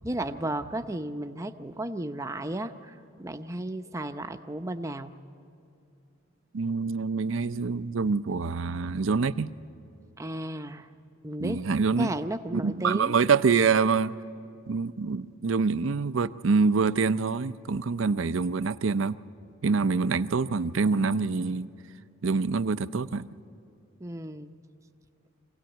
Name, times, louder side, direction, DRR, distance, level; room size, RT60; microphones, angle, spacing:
voice 1, 0.0-5.1 10.2-10.9 11.2-11.6 12.0-13.1 24.0-24.5, right 1 dB, 15° right, 0.7 m, -34 dB
voice 2, 6.5-9.5 11.4-12.1 12.5-14.2 14.7-19.2 19.6-21.7 22.2-23.3, right 4 dB, 70° right, 0.5 m, -25 dB
25.0 x 17.0 x 9.0 m
head